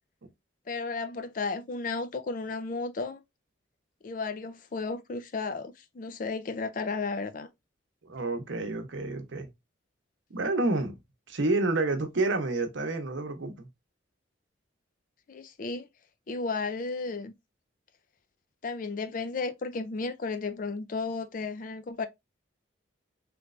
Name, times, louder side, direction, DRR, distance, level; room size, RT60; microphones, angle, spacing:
voice 1, 0.7-3.2 4.0-7.5 15.3-15.9 16.3-17.3 18.6-22.1, left 4 dB, 40° left, 0.4 m, -33 dB
voice 2, 8.0-9.5 10.3-11.0 11.3-13.7, right 2 dB, 70° right, 0.8 m, -29 dB
3.2 x 3.1 x 2.4 m
head